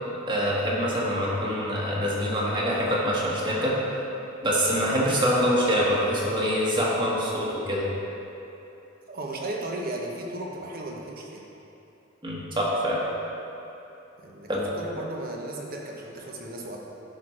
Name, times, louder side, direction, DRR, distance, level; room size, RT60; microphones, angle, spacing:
voice 1, 0.3-3.7 4.4-7.9 12.2-13.0 14.5-14.7, equal, 25° right, -5 dB, 1.5 m, -25 dB
voice 2, 9.1-11.5 14.2-14.5 14.8-16.8, right 1 dB, 50° right, -1 dB, 1.0 m, -35 dB
11.0 x 4.4 x 4.4 m, 3.0 s
head